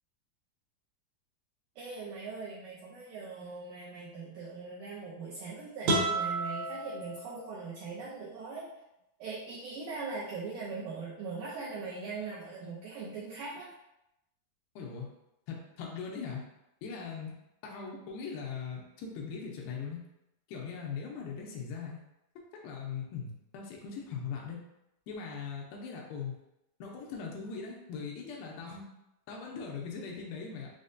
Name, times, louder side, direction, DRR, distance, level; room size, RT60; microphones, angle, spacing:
voice 1, 1.7-8.7 9.2-13.7, right 4 dB, 90° right, -7 dB, 1.7 m, -41 dB
sound 1, 5.8-7.8, right 2 dB, 70° right, 2.0 m, -31 dB
voice 2, 14.8-15.1 15.5-16.4 16.8-17.3 17.6-20.0 20.5-22.0 22.6-24.6 25.1-26.3 26.8-28.9 29.3-30.7, left 5 dB, 85° left, -1 dB, 2.5 m, -40 dB
6.1 x 2.1 x 2.6 m, 0.88 s
omnidirectional pair, 4.2 m